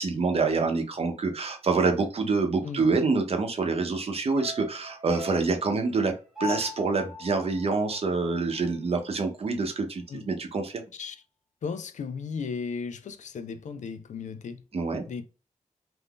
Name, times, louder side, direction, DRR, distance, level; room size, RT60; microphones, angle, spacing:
voice 1, 0.0-6.1 6.4-10.8 14.7-15.0, right 4 dB, 55° right, 0.7 m, -26 dB
sound 1, 4.4-8.8 9.1-9.2, left 4 dB, ahead, 0.8 m, -41 dB
voice 2, 11.6-14.6 15.1-15.3, left 5 dB, 75° left, 0.4 m, -35 dB
2.6 x 2.3 x 3.5 m
wide cardioid pair, 115°, 12 cm